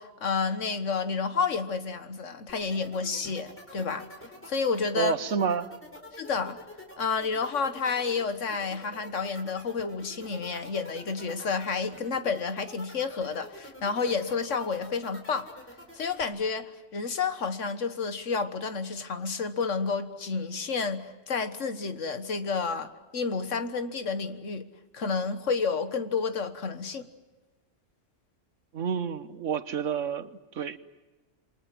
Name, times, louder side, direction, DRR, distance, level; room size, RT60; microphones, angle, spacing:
voice 1, 0.0-4.1 4.5-5.1 6.1-6.6 7.0-15.5 15.9-24.7 24.9-27.1, left 5 dB, 80° left, 9 dB, 1.7 m, -30 dB
sound 1, 2.5-16.2, equal, 10° left, 4.3 m, -47 dB
voice 2, 4.9-5.7 28.7-30.8, right 6 dB, 80° right, 12 dB, 1.4 m, -29 dB
28.5 x 24.0 x 7.7 m, 1.2 s
omnidirectional pair, 1.3 m